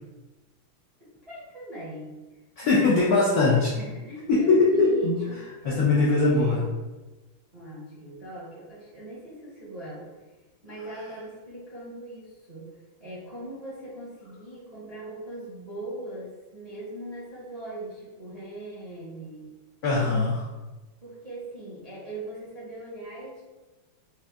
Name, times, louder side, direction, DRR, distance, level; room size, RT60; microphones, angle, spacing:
voice 1, 1.0-2.2 2.6-3.0 3.3-6.7 7.5-10.1 10.6-12.7 13.0-19.5 21.0-23.4, right 1 dB, 35° right, -9 dB, 0.6 m, -40 dB
voice 2, 2.6-3.7 4.3-5.2 5.6-6.6 19.8-20.5, left 3 dB, 85° left, -6 dB, 0.8 m, -21 dB
5.4 x 2.5 x 2.3 m, 1.2 s
omnidirectional pair, 2.4 m